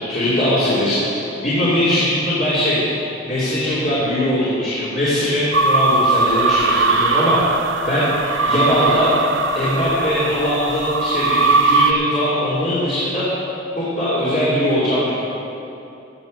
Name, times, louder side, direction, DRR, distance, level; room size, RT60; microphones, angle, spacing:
voice 1, 0.1-2.8 3.2-7.4 7.8-8.1 8.4-9.2 9.5-13.3 13.8-15.2, left 1 dB, 40° left, -11 dB, 3.2 m, -20 dB
sound 1, 5.5-11.9, right 3 dB, 75° right, 0.7 m, -19 dB
16.0 x 7.2 x 6.6 m, 2.8 s
head